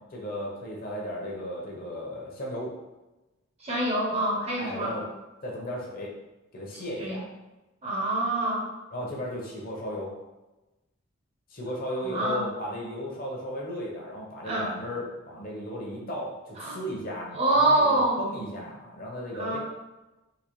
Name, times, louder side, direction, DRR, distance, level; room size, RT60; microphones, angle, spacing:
voice 1, 0.1-2.7 4.6-5.1 5.4-6.1 6.5-7.2 8.9-10.1 11.5-19.6, equal, 45° left, -2 dB, 0.8 m, -35 dB
voice 2, 3.6-5.0 6.7-7.2 7.8-8.6 12.0-12.5 14.4-14.7 16.6-16.8 17.3-18.2 19.4-19.6, right 2 dB, 30° right, -3 dB, 0.8 m, -26 dB
4.0 x 2.7 x 3.1 m, 1.1 s
head